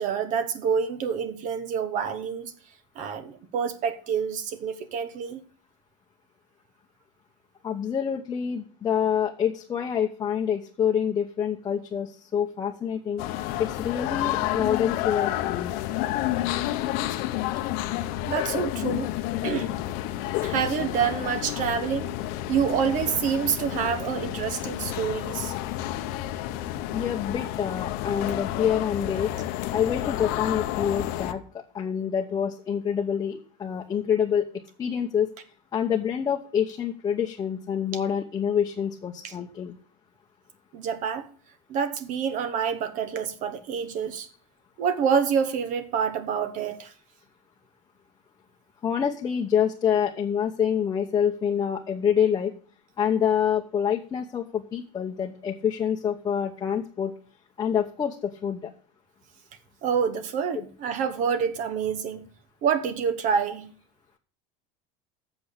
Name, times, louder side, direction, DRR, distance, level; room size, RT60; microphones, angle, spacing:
voice 1, 0.0-2.5 3.0-5.4 18.2-19.1 19.4-19.7 20.4-22.1 22.5-25.5 39.2-39.3 40.7-41.3 41.7-44.3 44.8-46.9 59.8-62.3 62.6-63.7, right 7 dB, 50° right, 1.2 m, -27 dB
voice 2, 7.6-13.2 13.6-15.7 26.9-29.3 29.7-34.5 34.8-35.3 35.7-39.7 48.8-52.5 53.0-57.1 57.6-58.7, left 8 dB, 25° left, 0.9 m, -26 dB
sound 1, 13.2-31.3, left 14 dB, 65° left, 0.8 m, -30 dB
7.8 x 6.9 x 8.2 m
supercardioid pair, 125°, 17 cm